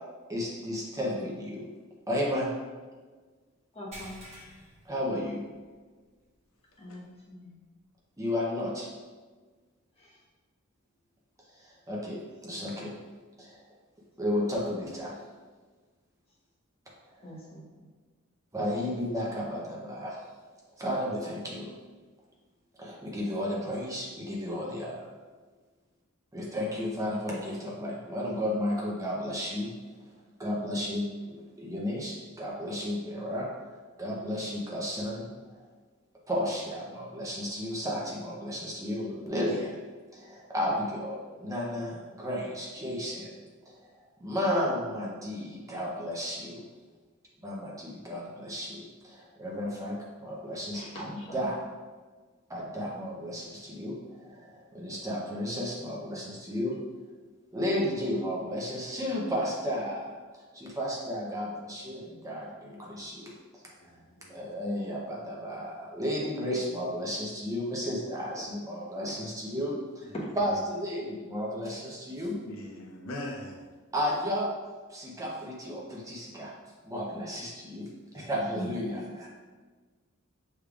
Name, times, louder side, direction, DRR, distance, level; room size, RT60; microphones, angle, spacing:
voice 1, 0.3-1.7 2.1-2.5 4.9-5.4 8.2-8.9 11.6-13.0 13.4-13.6 14.2-15.1 18.5-20.2 20.8-21.8 22.8-25.1 26.3-29.7 30.4-33.5 34.0-35.3 35.5-35.6 36.3-39.8 40.1-43.3 43.7-43.9 44.2-46.7 47.4-51.1 51.3-51.5 52.5-56.8 57.5-60.1 60.5-61.4 61.8-63.3 64.3-72.4 73.9-74.5 74.9-76.5 76.8-79.3, equal, 15° right, -4 dB, 0.6 m, -33 dB
voice 2, 3.7-4.2 6.8-7.6 9.9-10.2 17.2-17.9 23.5-23.7 42.8-42.9 50.7-51.4 69.2-69.3 70.1-70.3 78.5-78.7, equal, 25° left, -6 dB, 1.1 m, -42 dB
sound 1, 3.9-5.8 6.1-6.4 6.8-6.9 8.6-8.7, right 1 dB, 30° right, 1.2 m, -49 dB
voice 3, 63.8-64.4 72.4-73.6 78.1-78.3 78.6-78.7, left 1 dB, 65° left, -1 dB, 0.7 m, -41 dB
6.4 x 3.3 x 2.4 m, 1.4 s
head